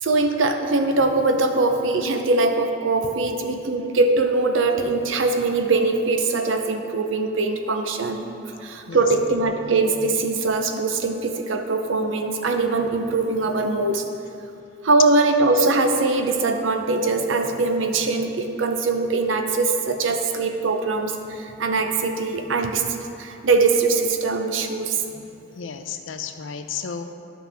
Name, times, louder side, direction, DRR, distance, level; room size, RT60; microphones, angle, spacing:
voice 1, 0.0-8.2 8.6-14.1 14.8-22.8 23.2-25.0, right 3 dB, 80° right, 6 dB, 0.6 m, -22 dB
voice 2, 25.6-27.1, left 6 dB, 80° left, 8 dB, 0.5 m, -33 dB
11.0 x 6.0 x 3.5 m, 2.6 s
head